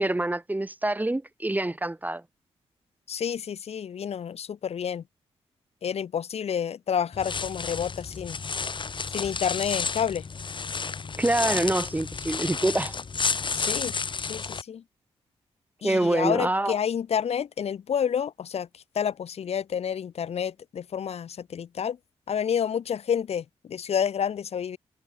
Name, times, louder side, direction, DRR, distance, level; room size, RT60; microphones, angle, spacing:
voice 1, 0.0-2.2 11.2-12.9 15.8-16.8, right 1 dB, 15° right, 1.6 m, -26 dB
voice 2, 3.1-5.0 5.8-8.4 9.1-10.3 13.5-14.8 15.8-22.0 22.3-24.8, left 8 dB, 75° left, 2.1 m, -29 dB
sound 1, 7.1-14.6, left 5 dB, 50° left, 7.1 m, -31 dB
cardioid pair, 75°, 11 cm